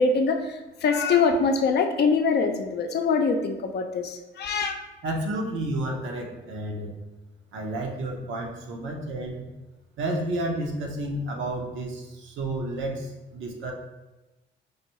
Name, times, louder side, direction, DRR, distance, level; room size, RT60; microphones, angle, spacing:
voice 1, 0.0-4.7, left 4 dB, 55° left, 5 dB, 0.5 m, -23 dB
voice 2, 5.0-6.9 7.5-9.5 10.0-13.7, right 1 dB, 75° right, 0 dB, 0.8 m, -31 dB
4.7 x 2.6 x 3.0 m, 1.1 s
cardioid pair, 90°, 20 cm